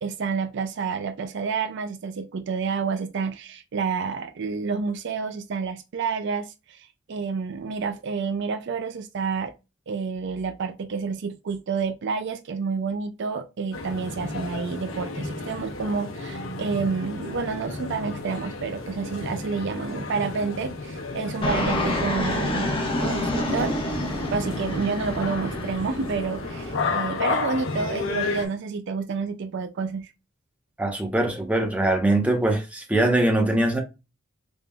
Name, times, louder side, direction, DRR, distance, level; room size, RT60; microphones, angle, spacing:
voice 1, 0.0-9.5 9.9-22.7 23.0-23.8 24.3-30.1, right 5 dB, 60° right, 0.4 m, -29 dB
sound 1, 13.7-28.5, left 3 dB, 75° left, 0.8 m, -32 dB
Fixed-wing aircraft airplane, 21.4-26.8, left 1 dB, 25° left, 1.0 m, -28 dB
voice 2, 30.8-33.8, right 1 dB, 5° right, 0.9 m, -22 dB
3.8 x 3.5 x 2.2 m
head